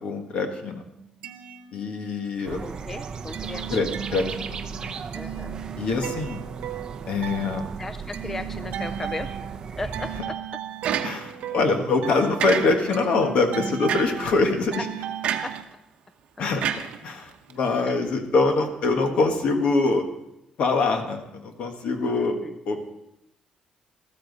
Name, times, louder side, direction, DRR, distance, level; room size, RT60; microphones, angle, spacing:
voice 1, 0.0-0.8 1.7-2.6 3.7-3.9 4.1-5.0 5.8-6.4 7.1-7.7 11.0-14.8 16.4-16.6 17.0-20.0 20.6-22.4 22.6-22.9, left 3 dB, 55° left, 5 dB, 1.5 m, -24 dB
sound 1, 1.0-2.4 2.8-15.6, right 10 dB, 90° right, 0.9 m, -37 dB
sound 2, 2.4-10.2, right 6 dB, 35° right, 0.6 m, -36 dB
voice 2, 2.6-4.0 5.1-5.6 7.8-9.3 9.8-10.4 14.7-14.8 15.4-15.6 22.1-22.6, left 2 dB, 15° left, 10 dB, 0.4 m, -36 dB
sound 3, 10.8-11.5 12.4-13.1 13.9-14.3 15.2-15.6 16.6-17.5, right 9 dB, 60° right, 0.9 m, -28 dB
13.5 x 13.5 x 4.1 m, 0.88 s
cardioid pair, 180°, 2 cm